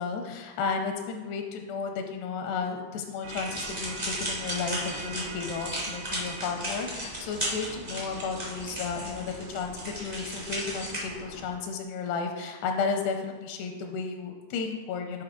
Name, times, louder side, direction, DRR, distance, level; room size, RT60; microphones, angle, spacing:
voice 1, 0.0-15.2, left 5 dB, 85° left, 4 dB, 2.6 m, -33 dB
sound 1, 3.2-11.5, right 3 dB, 80° right, 2.6 m, -43 dB
sound 2, 3.3-11.0, equal, 55° right, 0.4 m, -35 dB
7.7 x 4.9 x 3.6 m, 1.3 s
omnidirectional pair, 4.7 m